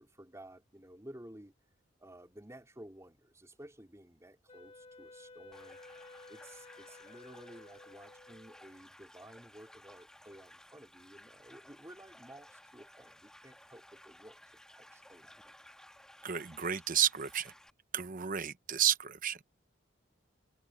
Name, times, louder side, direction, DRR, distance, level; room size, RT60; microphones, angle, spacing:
voice 1, 0.0-1.5 2.0-5.8 6.3-14.4 14.7-15.3, right 1 dB, 15° right, 3.8 m, -53 dB
Wind instrument woodwind instrument, 4.5-8.8, left 3 dB, 35° left, 1.5 m, -54 dB
sound 1, 5.5-17.7, left 1 dB, 5° left, 1.4 m, -57 dB
voice 2, 16.2-17.5 17.9-19.4, right 9 dB, 45° right, 0.9 m, -31 dB
head